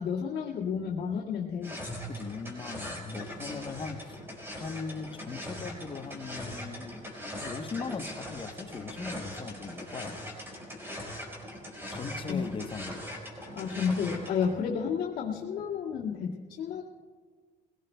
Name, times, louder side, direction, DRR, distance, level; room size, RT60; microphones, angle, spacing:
voice 1, 0.0-1.7 12.3-12.4 13.5-16.8, left 6 dB, 60° left, -8 dB, 2.1 m, -31 dB
sound 1, 1.6-14.5, equal, 15° right, 4.6 m, -41 dB
voice 2, 2.1-4.2 4.6-7.0 7.4-10.3 11.9-13.0, left 5 dB, 30° left, 7 dB, 1.0 m, -39 dB
22.0 x 17.5 x 2.2 m, 1.5 s
cardioid pair, 110°, 17 cm